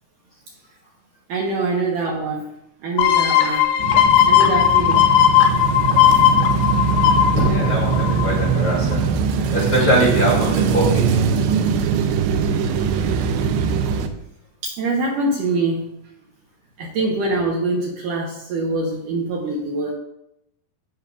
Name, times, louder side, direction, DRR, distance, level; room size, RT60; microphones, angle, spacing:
voice 1, 1.3-2.5 2.8-3.6 4.3-5.0 14.6-15.9 16.8-19.9, right 2 dB, 65° right, -2 dB, 2.3 m, -24 dB
sound 1, 3.0-8.5 8.9-9.0, left 11 dB, 85° left, 2.9 m, -16 dB
sound 2, 3.8-14.1, right 6 dB, 90° right, 2.7 m, -21 dB
voice 2, 7.4-9.1 9.5-11.1 17.0-17.1, equal, 35° left, -5 dB, 3.3 m, -21 dB
16.5 x 6.6 x 2.4 m, 0.80 s
omnidirectional pair, 4.6 m